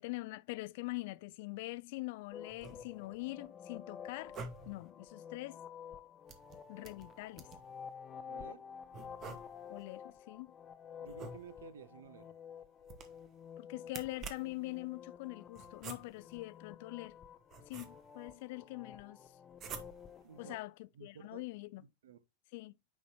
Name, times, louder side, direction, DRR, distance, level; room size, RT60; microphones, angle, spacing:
voice 1, 0.0-4.4 4.7-5.6 6.7-7.5 9.7-10.5 13.6-17.2 17.7-19.2 20.4-21.8 22.5-22.7, left 21 dB, 50° left, 0.3 m, -43 dB
sound 1, 2.3-20.6, left 7 dB, 25° left, 0.7 m, -51 dB
sound 2, 2.5-3.2 4.1-4.9 6.3-7.7 8.9-9.8 11.0-11.8 12.8-13.4 13.9-14.7 15.6-16.4 17.1-18.3 19.5-20.2, right 5 dB, 30° right, 1.1 m, -49 dB
voice 2, 8.2-8.6 11.0-12.3 20.2-20.6 20.9-21.4 21.8-22.2, right 7 dB, 60° right, 0.8 m, -53 dB
9.5 x 4.1 x 2.9 m
figure-of-eight pair, 90°, 0 cm